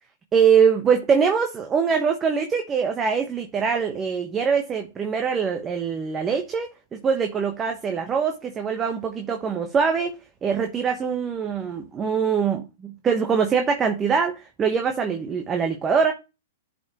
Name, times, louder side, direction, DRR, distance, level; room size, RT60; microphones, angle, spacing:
voice 1, 0.3-10.1 10.4-16.1, right 6 dB, 20° right, 1.1 m, -23 dB
11.5 x 5.3 x 3.0 m
hypercardioid pair, 120°, 0 cm